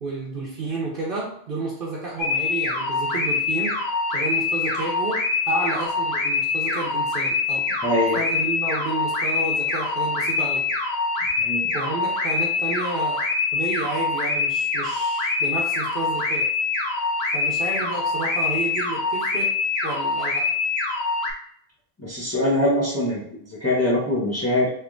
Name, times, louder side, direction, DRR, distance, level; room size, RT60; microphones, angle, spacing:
voice 1, 0.0-3.8 4.1-7.7 8.1-10.7 11.7-13.3 13.5-16.6 17.3-19.5 19.8-20.5, right 3 dB, 60° right, -4 dB, 1.0 m, -31 dB
sound 1, 2.2-21.3, left 4 dB, 75° left, 1.0 m, -24 dB
voice 2, 7.8-8.2 11.4-11.7 22.0-24.7, left 1 dB, 15° left, -7 dB, 1.2 m, -23 dB
3.4 x 3.0 x 3.7 m, 0.67 s
omnidirectional pair, 1.1 m